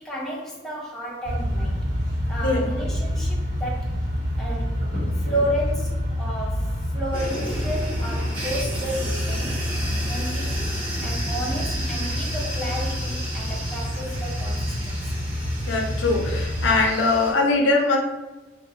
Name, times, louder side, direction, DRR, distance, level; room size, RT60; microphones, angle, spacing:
voice 1, 0.0-1.9 2.3-4.0 4.4-4.7 5.2-9.6 10.1-15.2, equal, ahead, -5 dB, 0.5 m, -32 dB
sound 1, 1.2-16.8, left 1 dB, 85° right, 1.0 m, -27 dB
sound 2, 7.1-17.3, right 1 dB, 25° right, 1.2 m, -34 dB
voice 2, 15.7-18.0, left 3 dB, 70° left, 2 dB, 0.5 m, -21 dB
2.8 x 2.3 x 2.6 m, 1.2 s
head